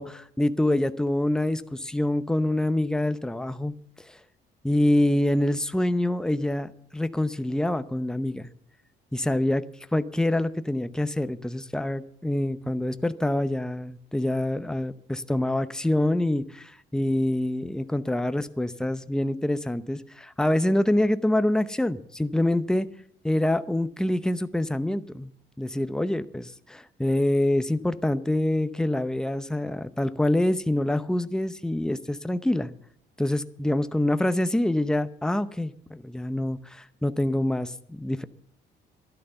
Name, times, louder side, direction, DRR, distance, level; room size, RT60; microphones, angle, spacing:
voice 1, 0.0-3.7 4.0-4.2 4.6-8.5 9.1-9.6 9.9-22.9 23.2-25.3 25.6-32.7 33.2-38.2, left 1 dB, 5° left, 11 dB, 0.8 m, -26 dB
12.5 x 11.5 x 6.8 m, 0.64 s
cardioid pair, 90°, 20 cm